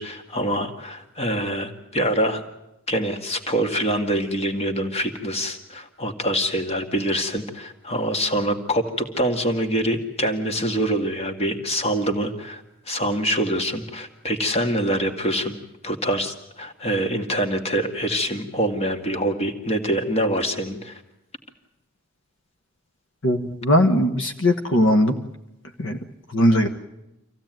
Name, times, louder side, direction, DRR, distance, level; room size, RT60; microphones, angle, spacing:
voice 1, 0.0-2.4 2.9-15.6 15.8-21.0, equal, 30° left, 6 dB, 2.0 m, -25 dB
voice 2, 23.2-25.2 25.8-26.0 26.3-26.7, left 1 dB, 65° left, 6 dB, 1.4 m, -19 dB
26.0 x 16.0 x 9.1 m, 0.91 s
head